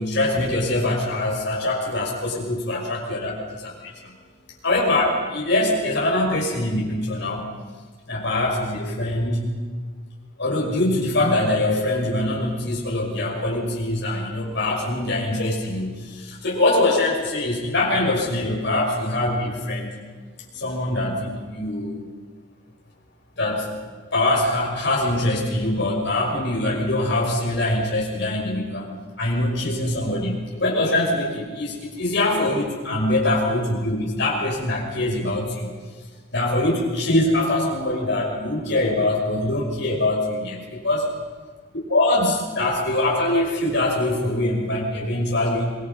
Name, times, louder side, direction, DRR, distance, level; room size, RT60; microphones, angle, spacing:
voice 1, 0.0-4.1 4.6-7.5 8.1-9.5 10.4-19.9 20.5-22.0 23.4-23.7 24.1-28.9 29.2-35.8 36.3-41.1 41.9-45.7, left 1 dB, 60° left, -1 dB, 5.9 m, -23 dB
26.0 x 20.0 x 5.5 m, 1.5 s
head